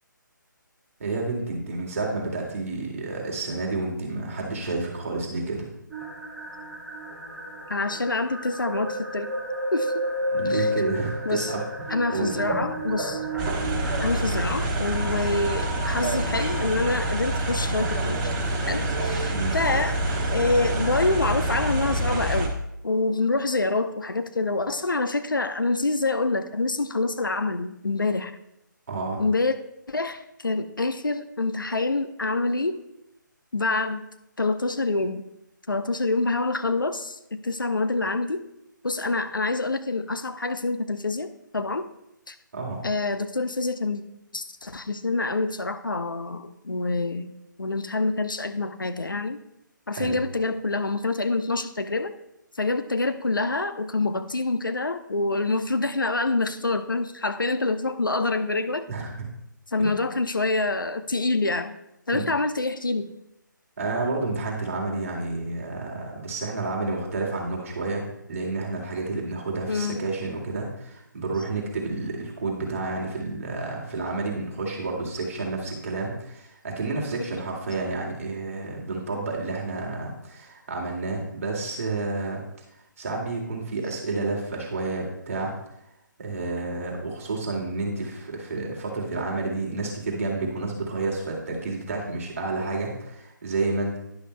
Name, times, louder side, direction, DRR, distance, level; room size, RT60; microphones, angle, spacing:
voice 1, 1.0-5.7 10.3-12.4 19.3-19.6 28.9-29.2 42.5-42.8 50.0-50.2 58.9-59.1 59.8-60.0 62.1-62.2 63.8-68.0 68.3-82.4 83.0-85.5 86.2-94.0, right 3 dB, 45° right, -1 dB, 2.2 m, -30 dB
sound 1, 5.9-21.9, equal, 5° right, 3.3 m, -33 dB
voice 2, 7.7-9.3 9.7-10.1 10.5-10.7 11.2-11.5 11.9-13.2 14.0-18.3 18.7-20.0 20.3-22.5 22.8-28.3 29.2-29.5 29.9-32.8 33.5-34.1 34.4-35.2 35.7-38.4 38.8-41.9 42.3-42.4 42.8-44.0 44.3-47.3 47.6-49.4 49.9-52.1 52.6-58.9 59.7-61.8 62.1-63.1 69.7-70.0, left 3 dB, 75° left, 9 dB, 0.7 m, -26 dB
sound 2, 13.4-22.5, right 1 dB, 20° right, 1.0 m, -27 dB
11.0 x 10.5 x 2.2 m, 0.84 s
figure-of-eight pair, 145°, 11 cm